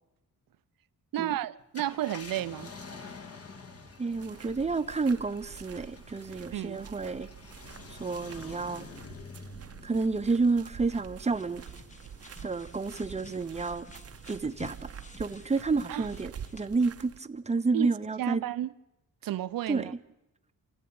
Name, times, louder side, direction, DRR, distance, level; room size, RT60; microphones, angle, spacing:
voice 1, 1.1-2.7 6.5-6.8 15.9-16.1 17.7-17.9 18.2-18.7 19.2-19.9, right 13 dB, 85° right, 0.7 m, -32 dB
Car, 1.6-12.4 12.9-13.0 15.1-15.3, left 4 dB, 45° left, 2.0 m, -48 dB
voice 2, 4.0-7.3 7.9-8.9 9.8-11.6 12.4-13.9 14.3-14.9 15.2-18.4 19.7-19.9, right 4 dB, 20° right, 0.9 m, -30 dB
sound 1, 4.1-17.2, right 8 dB, 45° right, 0.8 m, -47 dB
sound 2, 10.2-16.7, left 4 dB, 20° left, 1.3 m, -52 dB
27.5 x 14.0 x 8.8 m
wide cardioid pair, 140°, 33 cm